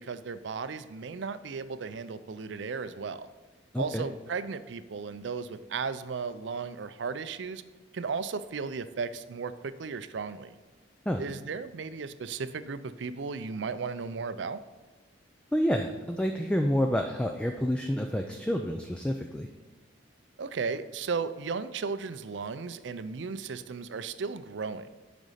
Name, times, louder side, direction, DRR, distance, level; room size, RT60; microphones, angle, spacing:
voice 1, 0.0-3.3 3.8-7.6 7.9-10.6 11.2-14.6 20.4-24.9, right 5 dB, 70° right, 13 dB, 0.5 m, -35 dB
voice 2, 3.7-4.0 11.1-11.2 15.5-19.5, equal, 5° left, 4 dB, 0.4 m, -28 dB
8.0 x 5.2 x 5.6 m, 1.3 s
head